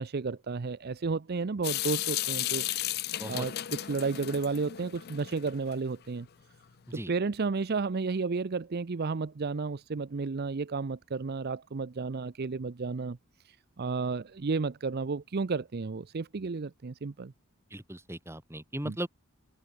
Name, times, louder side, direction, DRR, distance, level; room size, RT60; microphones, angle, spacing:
voice 1, 0.0-2.9 3.3-3.5 3.9-6.3 6.9-13.2 13.4-17.3 18.8-18.9, right 4 dB, 45° right, 0.5 m, -32 dB
Water tap faucet / Sink (filling or washing) / Drip, 1.6-5.7, left 14 dB, 45° left, 0.5 m, -34 dB
voice 2, 17.7-19.1, right 1 dB, 10° right, 2.7 m, -37 dB
head